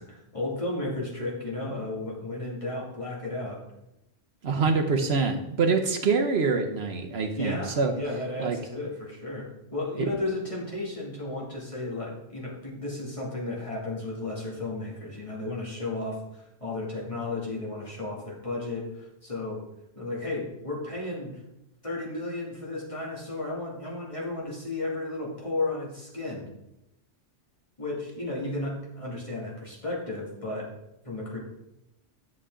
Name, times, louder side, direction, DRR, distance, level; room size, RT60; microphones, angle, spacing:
voice 1, 0.0-3.6 7.3-19.6 20.0-21.3 21.8-26.4 27.8-30.7 31.0-31.4, left 2 dB, 30° left, -4 dB, 2.5 m, -33 dB
voice 2, 4.4-7.9 8.4-8.6 10.1-10.2, right 4 dB, 65° right, 5 dB, 1.1 m, -25 dB
11.0 x 6.8 x 3.7 m, 0.86 s
omnidirectional pair, 1.2 m